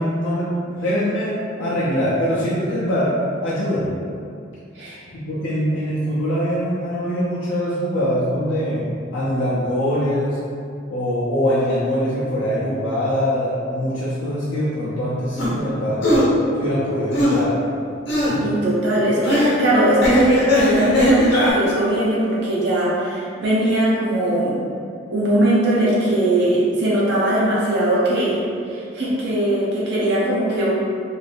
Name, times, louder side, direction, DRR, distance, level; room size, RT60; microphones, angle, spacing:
voice 1, 0.0-4.0 5.1-10.4 10.9-16.1 16.6-17.6 18.3-18.4, equal, 80° left, -9 dB, 0.5 m, -23 dB
sound 1, 15.4-15.5 16.0-16.3 17.1-17.4 18.1-18.3 19.2-19.6 20.0-21.5, left 1 dB, 65° left, 0.9 m, -18 dB
voice 2, 18.4-24.6 25.1-30.7, right 1 dB, 65° right, -7 dB, 0.8 m, -20 dB
2.6 x 2.5 x 3.3 m, 2.4 s
head